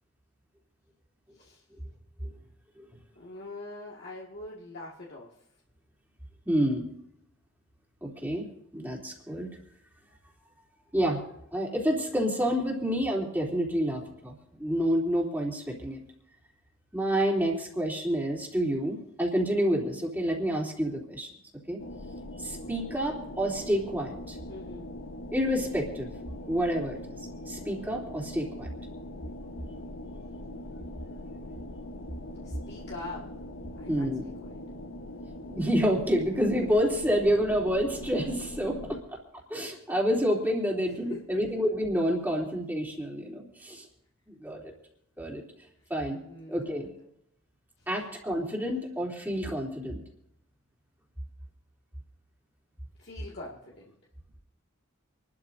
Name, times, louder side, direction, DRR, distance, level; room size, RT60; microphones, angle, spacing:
voice 1, 3.2-5.3 24.5-24.9 32.4-33.3 33.8-34.1 34.4-34.5 41.1-41.2 46.3-47.1 53.0-53.9, left 2 dB, 55° left, -4 dB, 1.9 m, -43 dB
voice 2, 6.5-6.8 8.0-8.5 8.7-9.5 10.9-11.2 11.5-16.0 16.9-21.3 21.7-21.8 22.4-24.4 25.3-26.1 26.5-27.0 27.5-28.7 33.9-34.3 35.5-39.2 39.5-43.9 44.3-44.7 45.2-45.4 45.9-46.2 46.5-46.9 47.9-50.0, equal, 10° right, -2 dB, 2.9 m, -28 dB
sound 1, 21.8-39.0, left 1 dB, 80° left, 1.1 m, -42 dB
27.5 x 12.5 x 2.6 m, 0.79 s
head